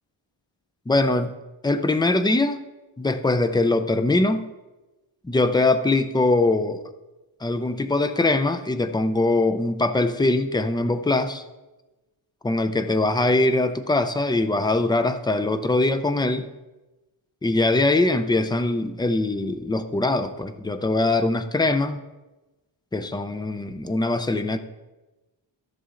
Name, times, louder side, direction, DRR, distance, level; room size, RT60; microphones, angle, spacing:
voice 1, 0.9-1.3 1.6-2.6 3.0-4.5 5.2-6.8 7.4-11.4 12.4-16.5 17.4-22.0 22.9-24.6, left 2 dB, 10° left, 10 dB, 0.4 m, -22 dB
14.0 x 6.9 x 3.8 m, 1.1 s
wide cardioid pair, 170°, 46 cm